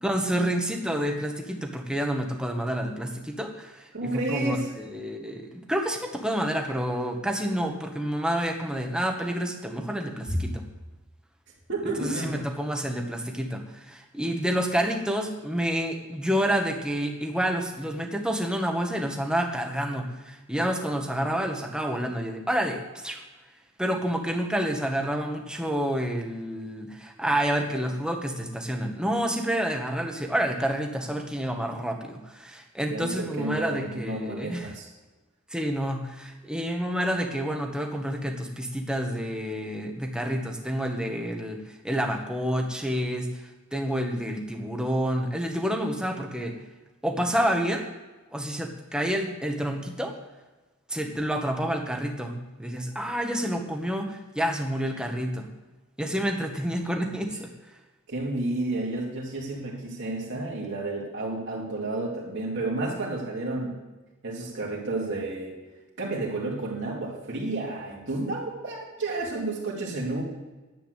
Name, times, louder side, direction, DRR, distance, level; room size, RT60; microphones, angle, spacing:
voice 1, 0.0-10.6 12.0-23.2 23.8-34.7 35.5-43.4 43.7-46.6 47.0-47.9 48.3-50.2 50.9-55.5 56.0-57.5, equal, 5° right, 2 dB, 1.6 m, -29 dB
voice 2, 3.9-4.7 10.3-10.4 11.7-12.5 32.9-34.9 56.8-57.0 58.1-63.8 64.2-65.5 66.0-70.2, right 2 dB, 60° right, -4 dB, 2.9 m, -31 dB
10.5 x 8.6 x 8.3 m, 1.2 s
head